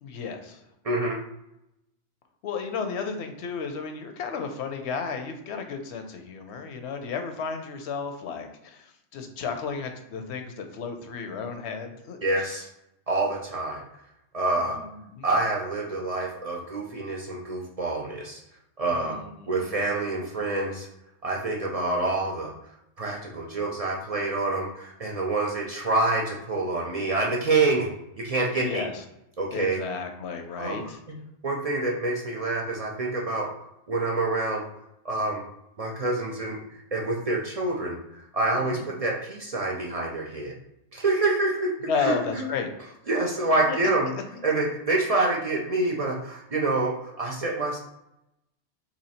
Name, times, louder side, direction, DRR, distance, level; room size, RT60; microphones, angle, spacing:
voice 1, 0.0-0.6 2.4-12.6 14.6-15.3 18.9-19.7 28.5-29.0 29.5-31.0 38.6-38.9 41.8-42.7 43.4-43.8, left 5 dB, 75° left, 6 dB, 0.9 m, -33 dB
voice 2, 0.8-1.2 12.2-12.7 13.1-13.8 14.3-14.8 15.2-18.4 18.8-19.2 19.5-20.9 21.2-22.5 23.0-27.9 28.2-28.8 29.4-29.8 30.5-30.8 31.1-31.2 31.4-34.7 35.0-35.4 35.8-38.0 38.3-40.5 40.9-42.5 43.1-44.1 44.4-47.8, right 2 dB, 45° right, -2 dB, 0.5 m, -27 dB
3.0 x 2.8 x 4.2 m, 0.85 s
omnidirectional pair, 1.1 m